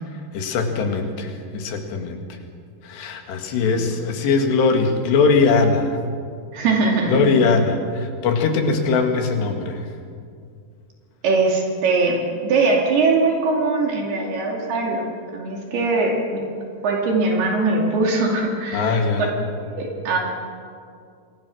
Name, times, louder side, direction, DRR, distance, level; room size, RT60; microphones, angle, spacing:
voice 1, 0.3-2.2 2.8-6.0 7.1-9.9 18.7-19.3, left 4 dB, 85° left, 4 dB, 4.2 m, -20 dB
voice 2, 6.5-7.2 11.2-15.0 15.3-16.4 16.8-19.0 19.5-20.2, right 3 dB, 70° right, -1 dB, 4.5 m, -21 dB
27.5 x 22.0 x 6.3 m, 2.3 s
omnidirectional pair, 4.8 m